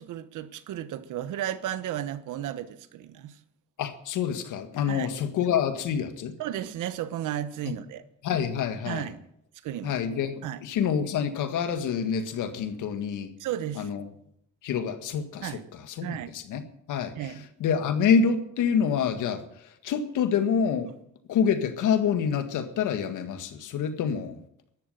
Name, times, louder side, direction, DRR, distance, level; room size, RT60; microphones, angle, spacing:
voice 1, 0.0-3.3 4.9-5.1 6.4-8.0 8.9-9.2 9.6-10.0 10.4-10.6 13.4-13.9 15.4-15.6 16.0-16.3 17.2-17.4, right 11 dB, 85° right, 1.2 m, -34 dB
voice 2, 3.8-6.3 8.2-9.1 9.8-13.3 13.8-14.1 14.6-20.9 21.3-24.4, left 7 dB, 85° left, 1.9 m, -27 dB
13.5 x 11.5 x 7.9 m
cardioid pair, 90°, 30 cm